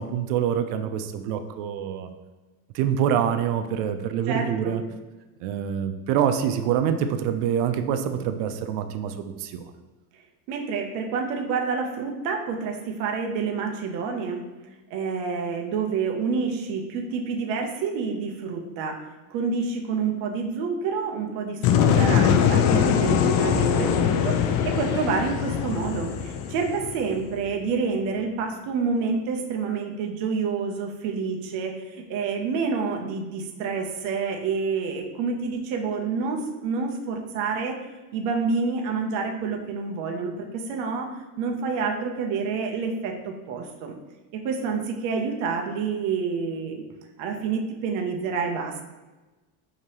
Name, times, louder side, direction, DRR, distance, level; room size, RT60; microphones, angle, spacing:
voice 1, 0.0-2.1 2.7-4.8 5.4-9.7, right 9 dB, 90° right, 8 dB, 0.6 m, -26 dB
voice 2, 4.3-4.8 10.5-14.4 14.9-19.0 19.3-37.8 38.1-44.0 44.3-46.8 47.2-48.8, right 5 dB, 40° right, 3 dB, 0.4 m, -28 dB
sound 1, 21.6-27.5, left 8 dB, 80° left, 0.5 m, -22 dB
4.7 x 2.8 x 2.8 m, 1.1 s
cardioid pair, 170°, 46 cm